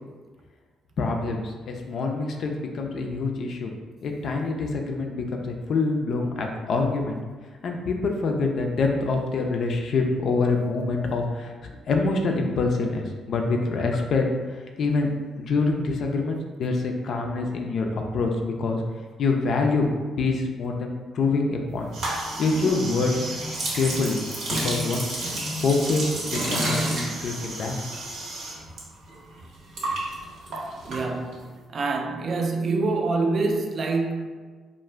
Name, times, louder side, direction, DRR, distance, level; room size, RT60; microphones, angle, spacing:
voice 1, 1.0-3.7 4.0-7.2 7.6-14.3 14.8-15.1 15.4-18.8 19.2-19.9 20.2-21.9 22.4-23.3 23.7-25.2 25.6-28.1, left 3 dB, 65° left, 0.4 m, -26 dB
sound 1, 21.9-28.8 29.1-31.5, right 1 dB, 75° right, 0.7 m, -30 dB
voice 2, 30.9-34.3, right 3 dB, 50° right, 0.3 m, -26 dB
2.4 x 2.1 x 3.2 m
cardioid pair, 75°, 0 cm